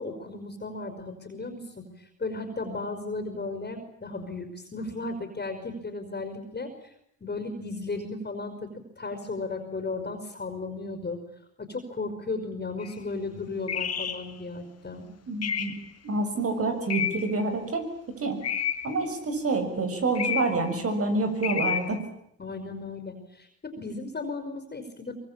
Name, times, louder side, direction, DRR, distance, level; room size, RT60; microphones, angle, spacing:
voice 1, 0.0-6.9 7.2-8.7 9.0-11.2 11.6-15.1 22.4-25.1, left 3 dB, 30° left, 6 dB, 5.2 m, -35 dB
sound 1, 12.8-12.9 13.7-14.3 15.4-15.9 16.9-17.4 18.4-19.0 20.2-20.7 21.4-22.0, left 8 dB, 55° left, 2.7 m, -30 dB
voice 2, 15.3-15.7 16.0-17.8 18.2-18.4 18.8-22.0, right 3 dB, 50° right, 7 dB, 7.1 m, -27 dB
24.0 x 22.5 x 8.9 m, 0.75 s
cardioid pair, 90°, 30 cm